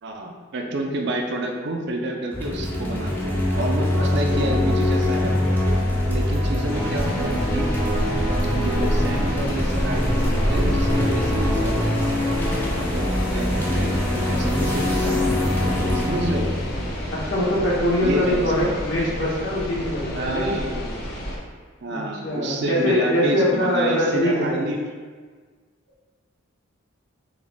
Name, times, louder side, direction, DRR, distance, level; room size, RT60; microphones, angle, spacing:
voice 1, 0.0-5.3 6.1-7.7 8.5-11.8 12.7-15.2 15.9-16.5 18.0-18.8 20.1-21.0 21.8-24.8, right 1 dB, 55° right, 2 dB, 0.4 m, -29 dB
sound 1, 2.3-17.7, left 1 dB, 10° left, 0.5 m, -24 dB
sound 2, 6.7-21.4, equal, 50° left, 0.7 m, -28 dB
voice 2, 17.1-20.6 21.9-24.6, left 1 dB, 65° left, -7 dB, 1.3 m, -23 dB
3.9 x 3.0 x 3.4 m, 1.5 s
head